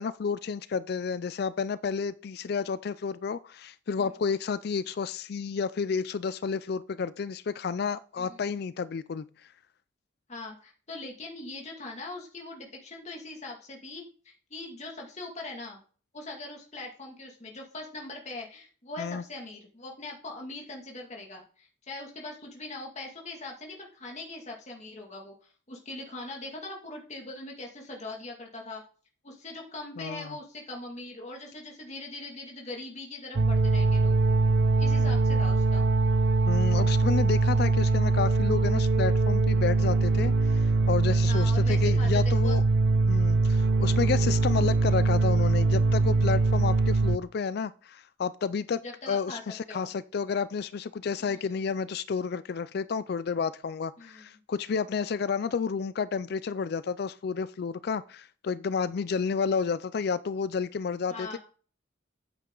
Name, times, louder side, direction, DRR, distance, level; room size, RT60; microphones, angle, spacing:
voice 1, 0.0-9.2 19.0-19.2 30.0-30.4 36.5-42.6 43.1-48.8 49.1-61.4, left 5 dB, 55° left, 0.4 m, -31 dB
voice 2, 10.3-15.8 16.1-28.8 29.2-34.2 34.8-35.9 41.3-42.6 48.8-49.4 49.7-49.9 51.2-51.6 54.0-54.3 61.1-61.4, left 2 dB, 35° left, 2.2 m, -41 dB
sound 1, 33.4-47.2, right 3 dB, 60° right, 0.6 m, -23 dB
9.4 x 8.5 x 3.8 m
head